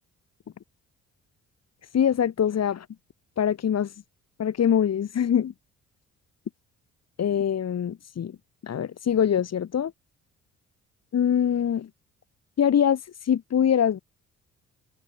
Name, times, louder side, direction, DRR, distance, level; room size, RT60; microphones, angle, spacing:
voice 1, 1.9-2.9 3.4-3.9 4.4-5.5 7.2-8.4 8.6-9.9 11.1-11.9 12.6-14.0, left 9 dB, 55° left, 5.6 m, -23 dB
cardioid pair, 90°, 30 cm